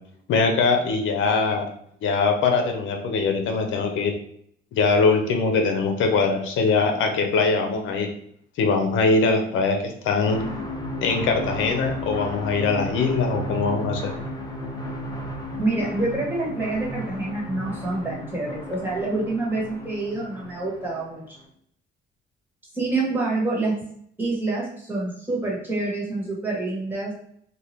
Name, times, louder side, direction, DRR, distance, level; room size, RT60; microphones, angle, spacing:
voice 1, 0.3-1.7 2.0-4.2 4.7-8.1 8.6-10.4 11.0-14.1, left 4 dB, 80° left, 4 dB, 0.6 m, -22 dB
sound 1, 10.3-21.4, left 1 dB, 20° left, 0.6 m, -34 dB
voice 2, 15.6-21.4 22.7-23.8 24.2-27.1, right 2 dB, 10° right, -5 dB, 1.4 m, -27 dB
2.8 x 2.2 x 3.1 m, 0.68 s
cardioid pair, 90°, 20 cm